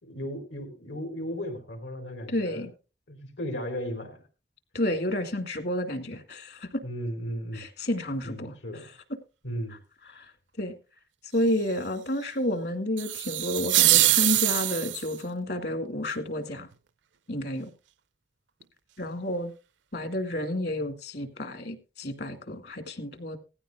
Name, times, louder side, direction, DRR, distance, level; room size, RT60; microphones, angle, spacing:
voice 1, 0.0-2.7 3.1-4.2 6.8-7.6 8.2-8.9 9.4-9.8, equal, 90° left, 4.5 m, -35 dB
voice 2, 2.3-2.7 4.7-6.8 7.5-8.6 10.1-10.3 10.6-10.7 11.3-16.7 17.3-17.7 19.0-19.5 19.9-23.4, left 1 dB, 60° left, 2.0 m, -30 dB
sound 1, 13.0-15.2, right 16 dB, 80° right, 0.6 m, -23 dB
17.5 x 15.0 x 2.3 m
head